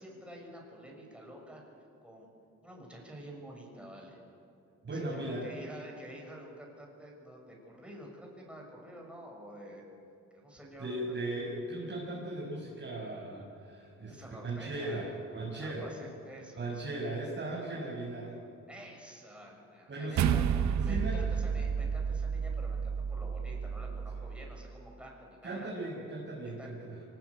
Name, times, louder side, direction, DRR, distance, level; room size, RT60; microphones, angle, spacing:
voice 1, 0.0-1.6 2.0-2.3 2.6-4.2 4.9-9.8 10.3-11.3 14.1-15.1 15.6-16.9 18.7-25.7 26.4-26.7, right 1 dB, 5° right, -1 dB, 6.5 m, -49 dB
voice 2, 4.8-5.5 10.8-14.2 14.4-15.9 16.6-18.3 19.9-20.5 20.9-21.2 25.4-26.9, right 2 dB, 40° right, -5 dB, 6.1 m, -37 dB
sound 1, 20.2-24.7, right 7 dB, 65° right, 1.0 m, -31 dB
24.0 x 20.0 x 8.4 m, 2.5 s
cardioid pair, 90°, 30 cm